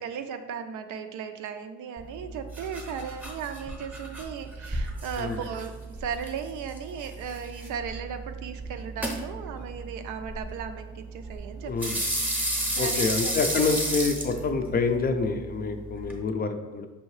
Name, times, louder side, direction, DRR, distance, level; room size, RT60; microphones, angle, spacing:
voice 1, 0.0-11.7 12.3-13.6, right 7 dB, 80° right, 8 dB, 0.5 m, -36 dB
sound 1, 2.0-16.2, right 1 dB, 5° right, 0.7 m, -33 dB
voice 2, 11.6-12.0 12.8-16.9, left 4 dB, 30° left, 6 dB, 0.4 m, -27 dB
5.4 x 2.7 x 3.1 m, 1.2 s
cardioid pair, 90°, 30 cm